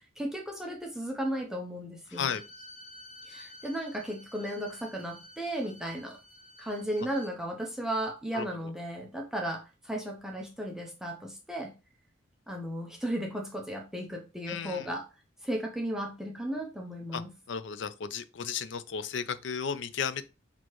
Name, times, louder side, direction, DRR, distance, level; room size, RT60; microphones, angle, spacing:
voice 1, 0.2-2.4 3.3-6.2 6.6-11.7 12.5-15.0 15.4-17.3, right 1 dB, 5° right, 0.7 m, -35 dB
voice 2, 2.1-2.4 8.3-8.7 14.5-14.9 17.1-17.2 17.5-20.3, left 6 dB, 75° left, 0.5 m, -34 dB
Bowed string instrument, 2.1-7.3, left 1 dB, 40° left, 1.2 m, -51 dB
6.1 x 2.8 x 3.1 m
head